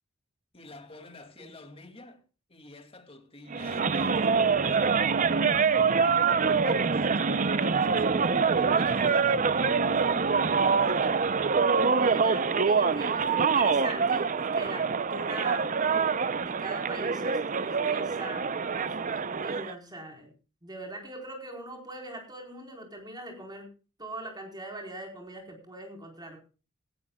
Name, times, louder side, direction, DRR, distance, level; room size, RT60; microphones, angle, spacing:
voice 1, 0.5-2.2 2.5-5.1 6.0-11.3, left 2 dB, 30° left, 2.5 m, -48 dB
sound 1, 3.5-19.7, right 5 dB, 40° right, 0.6 m, -25 dB
voice 2, 11.8-15.7 16.4-18.5 18.7-20.3 20.6-23.7 24.0-26.4, right 1 dB, 20° right, 4.4 m, -41 dB
18.0 x 14.5 x 2.3 m
head